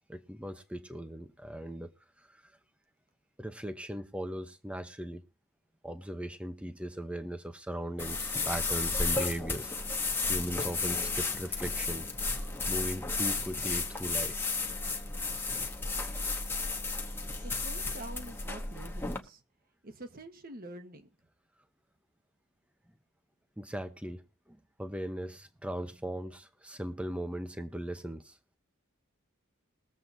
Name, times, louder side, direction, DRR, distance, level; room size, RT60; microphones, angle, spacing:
voice 1, 0.1-1.9 2.2-2.4 3.4-5.2 5.8-9.7 10.3-12.1 12.3-14.5 23.6-28.4, right 1 dB, 5° right, 0.8 m, -38 dB
sound 1, 8.0-19.2, left 3 dB, 10° left, 1.0 m, -33 dB
voice 2, 17.4-19.4 19.8-21.1, right 1 dB, 45° right, 1.2 m, -46 dB
21.5 x 7.6 x 2.7 m
head